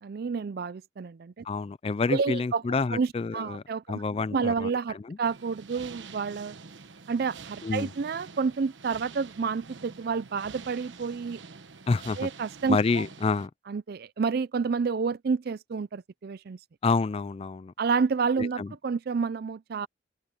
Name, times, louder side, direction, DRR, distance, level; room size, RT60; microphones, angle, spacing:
voice 1, 0.0-1.4 2.1-2.6 2.9-4.0 4.3-6.6 7.1-11.4 12.2-13.0 13.7-16.6 17.8-19.9, right 5 dB, 55° right, 0.4 m, -29 dB
voice 2, 1.4-5.2 7.6-7.9 11.9-12.3 12.7-13.5 16.8-17.7 18.4-18.7, left 4 dB, 30° left, 0.3 m, -28 dB
sound 1, 5.2-13.5, right 5 dB, 75° right, 1.1 m, -47 dB
open air
head